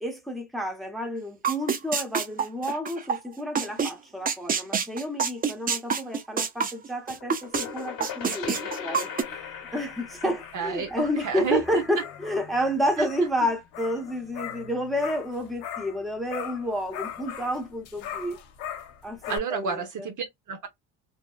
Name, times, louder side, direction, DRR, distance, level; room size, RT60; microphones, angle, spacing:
voice 1, 0.0-9.1 9.7-18.4 19.0-20.1, equal, ahead, 0.9 m, -30 dB
sound 1, 1.4-3.2 3.5-3.9 4.3-7.7 8.0-9.2, right 6 dB, 20° right, 0.4 m, -26 dB
sound 2, 7.1-12.7, left 7 dB, 55° left, 1.2 m, -39 dB
sound 3, 9.0-16.0 16.3-19.4, left 9 dB, 80° left, 0.8 m, -40 dB
voice 2, 10.2-11.8 13.0-13.1 19.3-20.7, right 6 dB, 45° right, 0.8 m, -30 dB
2.7 x 2.2 x 2.3 m
supercardioid pair, 80°, 43 cm